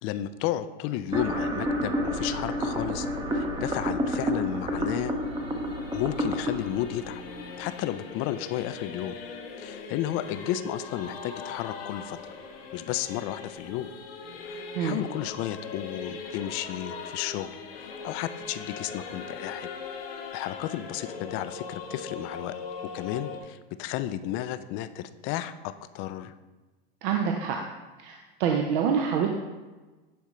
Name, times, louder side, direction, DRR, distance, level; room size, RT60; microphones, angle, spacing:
voice 1, 0.0-3.1 3.3-5.1 5.9-7.2 7.6-9.2 9.6-12.2 12.7-13.9 14.4-19.7 20.3-22.5 22.9-26.3, left 12 dB, 45° left, 13 dB, 0.4 m, -33 dB
sound 1, 1.1-8.2, equal, 15° right, 0.8 m, -30 dB
Singing / Musical instrument, 4.0-23.4, left 4 dB, 80° left, 0.9 m, -41 dB
voice 2, 27.0-27.6 28.0-29.3, right 7 dB, 60° right, 2 dB, 0.7 m, -26 dB
10.0 x 3.6 x 3.1 m, 1.2 s
hypercardioid pair, 95°, 30 cm